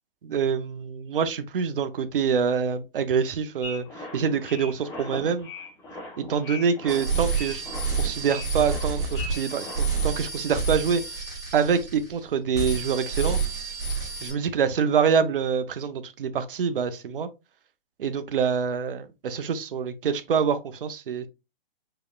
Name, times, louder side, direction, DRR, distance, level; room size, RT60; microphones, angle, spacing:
voice 1, 0.2-5.5 6.2-7.6 8.0-11.2 11.5-13.4 14.2-17.3 18.0-21.3, right 6 dB, 65° right, 0.7 m, -26 dB
sound 1, 3.6-10.1, left 2 dB, 10° left, 1.1 m, -40 dB
sound 2, 6.9-12.2 12.5-14.3, right 5 dB, 10° right, 1.8 m, -29 dB
4.8 x 3.1 x 2.2 m
hypercardioid pair, 140°, 30 cm